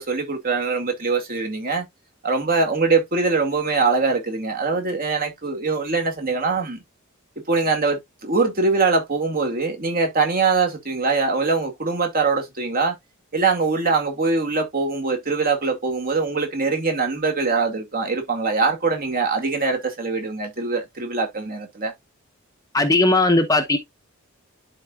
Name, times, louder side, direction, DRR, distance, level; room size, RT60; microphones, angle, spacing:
voice 1, 0.0-1.9 2.2-6.8 7.5-13.0 13.3-21.9, right 4 dB, 40° right, 2.0 m, -22 dB
voice 2, 22.7-23.8, left 2 dB, 15° left, 0.8 m, -17 dB
11.5 x 4.0 x 2.3 m
head